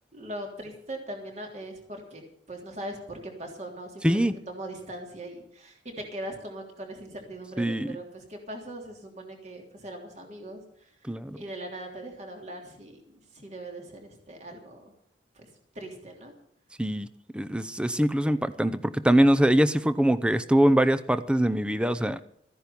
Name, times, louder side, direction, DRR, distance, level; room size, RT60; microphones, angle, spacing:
voice 1, 0.1-2.2 2.5-11.1 11.3-14.9 15.3-16.3, right 1 dB, 40° right, 2 dB, 3.2 m, -40 dB
voice 2, 4.0-4.3 7.6-8.0 11.1-11.4 16.8-17.1 17.3-22.2, right 1 dB, 5° right, 12 dB, 0.6 m, -23 dB
14.5 x 10.5 x 7.0 m, 0.67 s
head